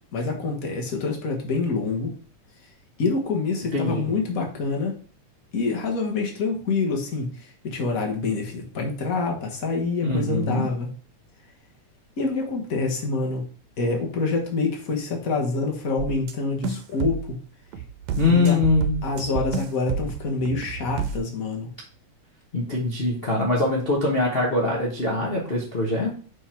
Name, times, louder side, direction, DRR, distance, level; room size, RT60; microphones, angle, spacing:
voice 1, 0.1-2.1 3.0-4.9 5.5-10.9 12.2-13.4 13.8-17.4 18.2-18.5 19.0-21.7, left 3 dB, 50° left, 1 dB, 1.0 m, -26 dB
voice 2, 3.7-4.1 10.0-10.6 18.2-19.0 22.5-26.2, left 2 dB, 80° left, -4 dB, 0.5 m, -23 dB
sound 1, 16.0-16.3 16.6-17.3 17.7-21.2, right 6 dB, 75° right, 2.0 m, -30 dB
5.4 x 5.2 x 4.4 m, 0.42 s
omnidirectional pair, 3.4 m